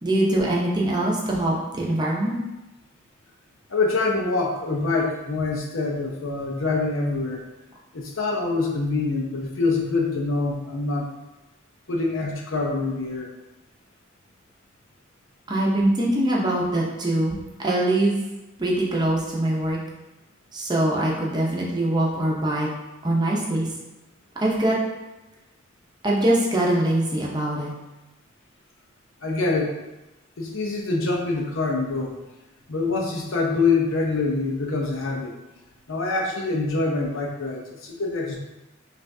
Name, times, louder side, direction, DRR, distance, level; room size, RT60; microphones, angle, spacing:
voice 1, 0.0-2.4 15.5-18.2 18.6-19.8 20.5-22.7 23.0-23.7 24.4-24.8 26.0-27.7, right 1 dB, 20° right, -3 dB, 0.7 m, -23 dB
voice 2, 3.7-7.4 7.9-11.1 11.9-13.3 29.2-29.7 30.4-32.2 32.7-35.3 35.9-38.4, left 3 dB, 85° left, 0 dB, 0.7 m, -25 dB
5.5 x 2.5 x 2.6 m, 1.0 s
head